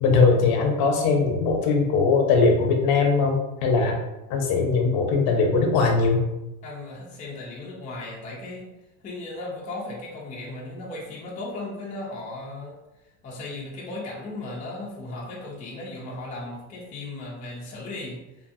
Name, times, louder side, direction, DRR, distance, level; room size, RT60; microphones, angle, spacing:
voice 1, 0.0-3.9 4.3-6.2, left 4 dB, 55° left, 2 dB, 0.7 m, -20 dB
voice 2, 6.6-8.7 9.0-12.8 13.2-18.2, left 2 dB, 15° left, -4 dB, 0.5 m, -36 dB
2.6 x 2.6 x 2.4 m, 0.96 s
supercardioid pair, 130°, 46 cm